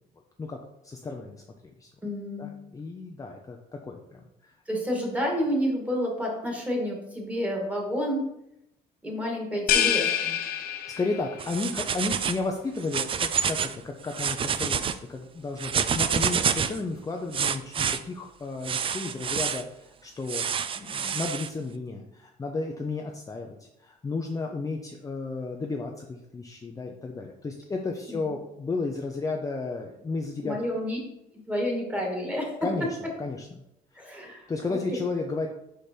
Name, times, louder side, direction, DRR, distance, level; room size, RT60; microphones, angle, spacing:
voice 1, 0.8-1.9 2.4-4.5 10.4-20.5 20.8-30.6 32.6-32.9 33.2-33.5 34.3-35.5, left 3 dB, 20° left, 1 dB, 0.6 m, -33 dB
voice 2, 2.0-2.5 4.7-8.2 9.0-10.3 28.1-28.2 30.4-31.0 31.5-32.5 34.0-34.8, equal, 10° right, -1 dB, 2.0 m, -29 dB
sound 1, 9.7-11.4, left 9 dB, 60° left, 0.8 m, -26 dB
sound 2, 11.4-12.4 12.8-13.7 14.1-14.9 15.6-16.8 17.3-18.0 18.6-19.6 20.3-21.5, right 7 dB, 30° right, 0.4 m, -28 dB
5.1 x 5.0 x 4.4 m, 0.82 s
cardioid pair, 110°, 17 cm